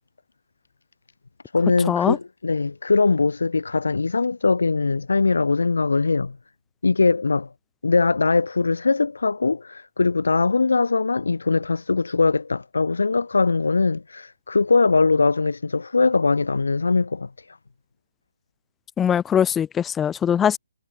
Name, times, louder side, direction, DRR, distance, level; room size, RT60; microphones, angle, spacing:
voice 1, 1.5-6.4 6.8-7.5 7.8-17.6, left 4 dB, 75° left, 2.2 m, -21 dB
voice 2, 19.0-20.6, left 8 dB, 10° left, 0.8 m, -21 dB
figure-of-eight pair, 140°, 0 cm